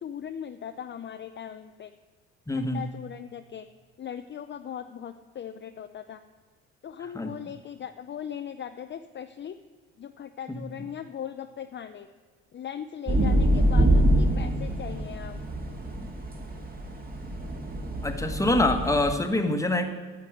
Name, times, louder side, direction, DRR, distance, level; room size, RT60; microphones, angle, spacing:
voice 1, 0.0-1.9 2.5-3.7 4.0-6.2 6.8-9.6 10.0-12.1 12.5-15.4, left 9 dB, 35° left, 8 dB, 0.6 m, -39 dB
voice 2, 2.5-2.9 7.1-7.3 10.5-10.7 18.0-19.9, left 2 dB, 10° left, 6 dB, 1.4 m, -25 dB
sound 1, 13.1-19.1, right 1 dB, 30° right, 2.1 m, -25 dB
9.3 x 7.4 x 9.0 m, 1.5 s
supercardioid pair, 75°, 31 cm